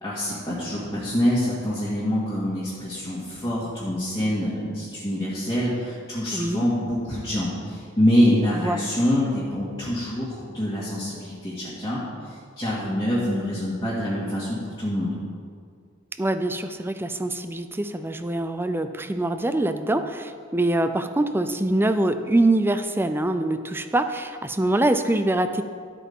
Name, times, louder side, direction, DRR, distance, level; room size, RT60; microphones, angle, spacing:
voice 1, 0.0-12.0 12.6-15.1, equal, 20° left, -10 dB, 2.0 m, -25 dB
voice 2, 6.3-6.6 8.5-8.8 16.2-25.6, right 1 dB, 10° right, 9 dB, 0.4 m, -24 dB
12.5 x 8.2 x 3.7 m, 2.1 s
head